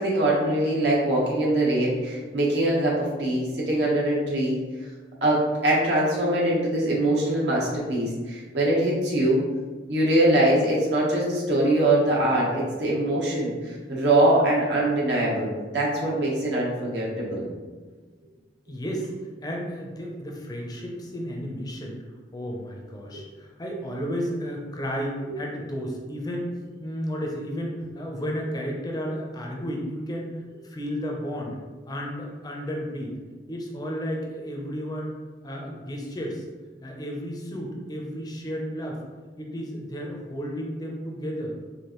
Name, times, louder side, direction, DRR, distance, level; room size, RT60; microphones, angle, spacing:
voice 1, 0.0-4.6 5.2-9.4 9.9-17.5, right 1 dB, 70° right, -4 dB, 1.1 m, -23 dB
voice 2, 18.7-19.1 19.4-22.0 22.3-26.5 26.8-31.6 31.9-33.2 33.5-35.2 35.4-36.4 36.8-39.0 39.4-41.6, equal, 20° left, 0 dB, 0.5 m, -32 dB
4.8 x 2.5 x 3.0 m, 1.4 s
head